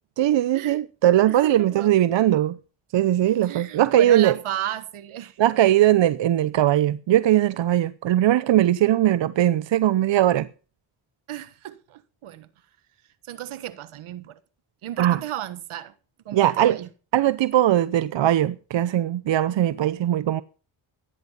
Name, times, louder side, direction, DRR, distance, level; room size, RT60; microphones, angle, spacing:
voice 1, 0.2-2.6 2.9-4.3 5.4-10.5 15.0-15.2 16.3-16.8 17.1-20.4, right 12 dB, 60° right, 0.8 m, -20 dB
voice 2, 1.3-1.9 3.4-5.4 11.3-12.5 13.2-14.4 14.8-15.9 16.2-16.9, right 12 dB, 75° right, 1.4 m, -34 dB
15.0 x 10.5 x 5.6 m
supercardioid pair, 60°, 49 cm